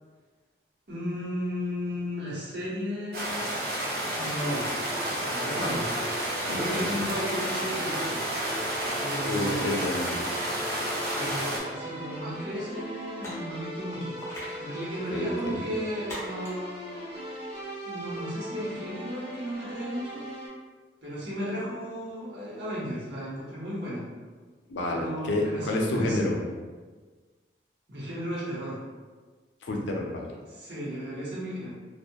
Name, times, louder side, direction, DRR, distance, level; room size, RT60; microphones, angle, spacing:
voice 1, 0.9-3.9 4.2-4.7 5.2-5.8 6.5-8.2 9.0-9.8 11.1-14.2 14.6-17.1 17.8-20.2 21.0-24.1 24.9-26.3 27.9-28.8 30.5-31.7, equal, 70° right, -8 dB, 1.0 m, -34 dB
sound 1, 3.1-11.6, right 1 dB, 55° right, 0.5 m, -31 dB
sound 2, 4.0-20.5, right 1 dB, 35° right, 1.0 m, -39 dB
voice 2, 5.5-5.9 6.5-6.9 9.3-10.2 15.1-15.6 24.7-26.4 29.6-30.4, left 1 dB, 85° left, 0 dB, 0.4 m, -29 dB
sound 3, 6.3-6.6 7.2-7.5 9.1-9.4 10.9-11.6 11.9-12.0 13.2-13.5 14.2-14.7 16.1-16.6, equal, 15° left, 0.6 m, -41 dB
2.7 x 2.3 x 2.2 m, 1.4 s
head